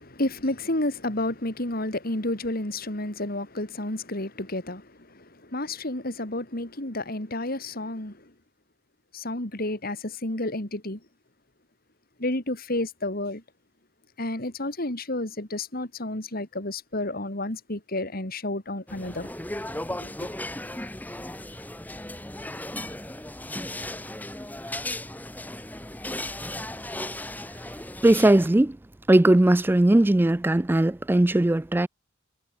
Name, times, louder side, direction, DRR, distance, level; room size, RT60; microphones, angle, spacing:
voice 1, 0.0-8.3 9.1-11.0 12.2-13.4 14.2-19.3 20.0-20.3, left 1 dB, 50° left, 3.8 m, -31 dB
sound 1, 18.9-28.5, left 1 dB, 10° left, 2.2 m, -36 dB
voice 2, 28.0-28.8 29.1-31.9, right 1 dB, 10° right, 0.3 m, -19 dB
head